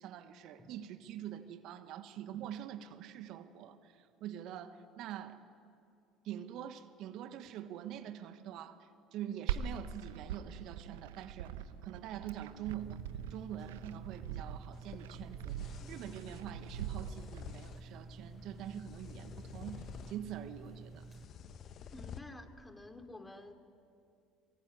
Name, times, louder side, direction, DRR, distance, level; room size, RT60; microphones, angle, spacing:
voice 1, 0.0-5.4 6.2-11.5 11.8-13.0 13.3-21.0, right 10 dB, 60° right, 9 dB, 1.4 m, -45 dB
Glass, 9.5-17.4, right 10 dB, 80° right, 1.0 m, -42 dB
sound 1, 12.7-21.3, right 3 dB, 25° right, 0.6 m, -51 dB
sound 2, 14.7-22.2, left 7 dB, 50° left, 1.4 m, -51 dB
voice 2, 21.9-23.5, left 2 dB, 15° left, 7 dB, 3.0 m, -50 dB
23.5 x 23.0 x 9.7 m, 2.4 s
hypercardioid pair, 65°, 0 cm